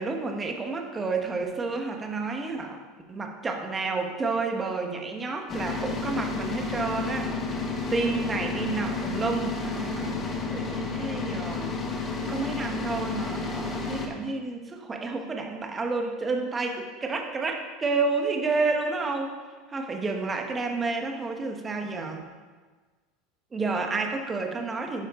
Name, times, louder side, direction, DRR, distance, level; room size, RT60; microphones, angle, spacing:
voice 1, 0.0-2.8 3.1-7.6 7.9-10.2 10.5-11.7 12.3-19.4 19.7-22.2 23.5-25.1, right 3 dB, 20° right, 3 dB, 1.3 m, -30 dB
sound 1, 5.5-14.1, left 4 dB, 25° left, 1.4 m, -31 dB
11.0 x 9.6 x 3.8 m, 1.4 s
supercardioid pair, 145°, 0 cm